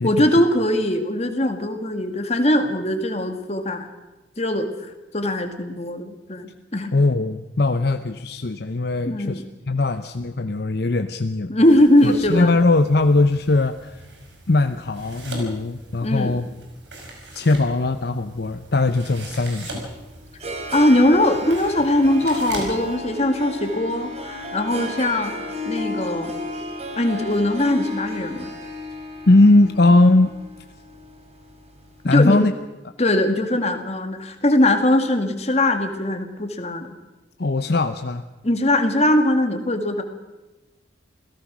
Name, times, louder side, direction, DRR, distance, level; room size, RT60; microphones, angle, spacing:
voice 1, 0.0-3.9 4.4-4.7 5.1-6.9 9.1-9.4 11.5-12.6 16.0-16.4 20.7-25.3 25.7-26.3 27.0-28.5 32.0-32.4 33.0-36.9 38.4-40.0, left 1 dB, 35° left, 7 dB, 2.0 m, -20 dB
voice 2, 6.9-11.5 12.0-14.1 14.5-16.5 17.3-19.8 29.3-30.3 32.0-32.5 37.4-38.2, left 2 dB, 60° left, 8 dB, 0.8 m, -19 dB
sound 1, 11.6-23.0, right 1 dB, 70° right, 5.9 m, -40 dB
Harp, 20.0-31.9, left 1 dB, 35° right, 3.1 m, -33 dB
27.5 x 17.0 x 6.2 m, 1.1 s
head